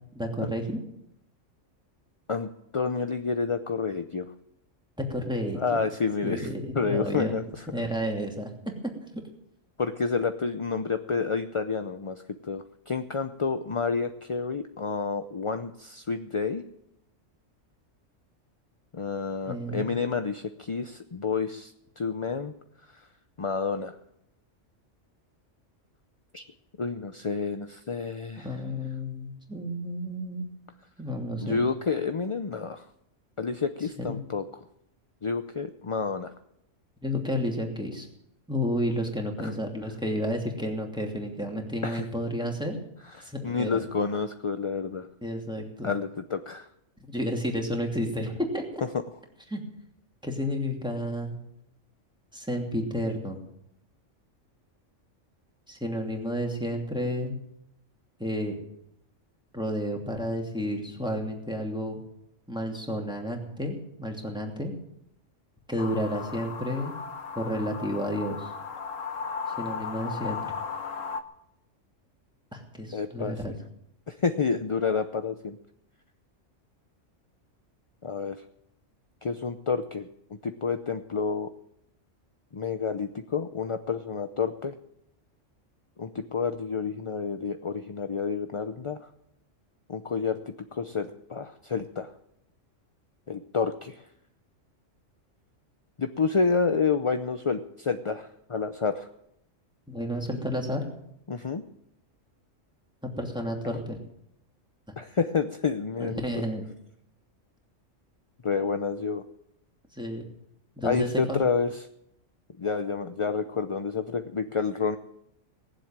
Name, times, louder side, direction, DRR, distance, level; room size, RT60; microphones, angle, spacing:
voice 1, 0.1-0.8 5.0-5.8 6.2-7.4 7.7-8.5 19.5-19.9 28.4-30.5 31.0-31.6 34.0-34.2 37.0-38.1 38.5-42.8 43.2-43.9 45.2-45.9 47.1-48.8 49.5-49.6 50.2-51.4 52.3-53.4 55.7-57.4 58.2-58.6 59.5-62.0 62.5-64.7 65.7-66.9 67.3-68.5 69.6-70.5 72.5-73.5 99.9-100.9 103.2-104.0 106.0-106.6 109.9-110.2 110.8-111.4, equal, 5° right, 1 dB, 2.7 m, -31 dB
voice 2, 2.3-4.3 5.6-6.5 6.7-7.7 9.8-16.6 18.9-22.5 22.9-23.0 23.4-23.9 26.3-26.4 26.8-28.5 31.4-32.9 33.4-34.4 35.2-36.3 39.4-39.5 41.8-42.0 43.2-45.1 45.8-46.7 72.9-73.3 74.1-75.6 78.0-78.4 79.2-80.1 80.4-81.5 82.5-84.7 86.0-89.1 89.9-92.1 93.3-94.0 96.0-99.1 101.3-101.6 105.0-106.2 108.4-109.2 110.8-111.9 112.6-115.0, left 5 dB, 35° left, 8 dB, 0.5 m, -29 dB
sound 1, 65.8-71.2, left 6 dB, 85° left, 1.4 m, -36 dB
19.5 x 7.6 x 8.9 m, 0.78 s
omnidirectional pair, 1.3 m